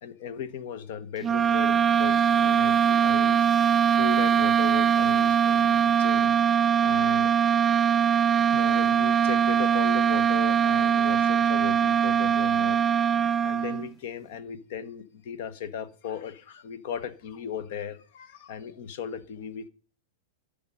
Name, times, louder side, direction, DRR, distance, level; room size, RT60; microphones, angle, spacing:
voice 1, 0.0-3.5 3.9-6.3 6.8-7.3 8.4-12.8 13.4-19.7, left 8 dB, 60° left, 15 dB, 1.2 m, -37 dB
sound 1, 1.2-13.9, right 8 dB, 25° right, 0.4 m, -22 dB
12.0 x 5.2 x 5.4 m, 0.39 s
hypercardioid pair, 105°, 0 cm